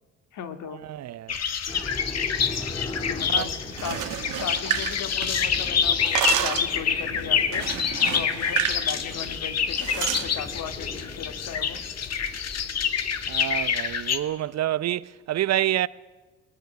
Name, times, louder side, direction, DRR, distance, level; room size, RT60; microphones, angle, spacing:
voice 1, 0.3-0.8 2.0-2.1 3.1-4.1 4.4-7.7 8.1-11.8, left 7 dB, 75° left, 2.1 m, -37 dB
voice 2, 0.8-1.3 3.3-3.5 13.3-15.9, right 13 dB, 60° right, 0.8 m, -27 dB
sound 1, 1.3-14.2, left 7 dB, 60° left, 1.9 m, -27 dB
sound 2, 1.7-13.7, left 2 dB, 20° left, 5.6 m, -40 dB
sound 3, 3.7-5.6 5.9-6.8 7.5-8.8 9.1-9.3 9.8-10.3, right 12 dB, 85° right, 1.4 m, -29 dB
21.0 x 19.5 x 8.3 m
cardioid pair, 90°, 30 cm